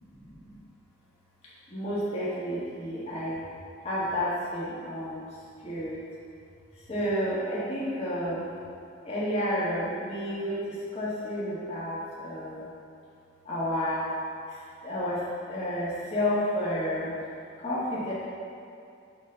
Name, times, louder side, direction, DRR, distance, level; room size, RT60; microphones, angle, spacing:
voice 1, 0.1-0.6 1.7-3.4 3.8-5.3 5.6-6.0 6.9-8.5 9.0-12.7 13.5-14.1 14.5-14.6 14.8-17.1 17.6-18.1, equal, 35° left, -9 dB, 1.7 m, -31 dB
8.0 x 4.0 x 5.7 m, 2.5 s
head